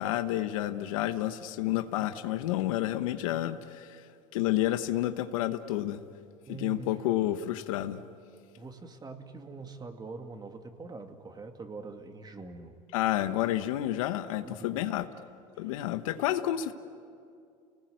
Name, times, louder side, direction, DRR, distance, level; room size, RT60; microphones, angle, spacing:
voice 1, 0.0-4.0 4.3-6.0 6.6-8.0 12.9-15.1 15.6-16.7, left 13 dB, 85° left, 10 dB, 1.1 m, -30 dB
voice 2, 6.5-6.9 8.6-12.8 14.4-14.9 15.5-15.8, right 4 dB, 25° right, 5 dB, 2.4 m, -44 dB
29.5 x 19.5 x 9.5 m, 2.4 s
supercardioid pair, 90°, 17 cm